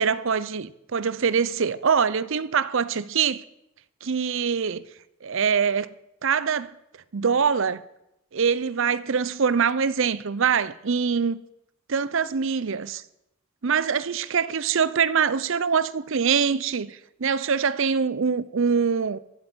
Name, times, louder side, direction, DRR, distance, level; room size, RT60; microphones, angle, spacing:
voice 1, 0.0-3.4 4.0-4.8 5.2-5.9 6.2-6.8 7.1-7.8 8.3-11.4 11.9-13.0 13.6-19.2, right 6 dB, 60° right, 0.6 m, -24 dB
16.0 x 11.5 x 6.2 m
head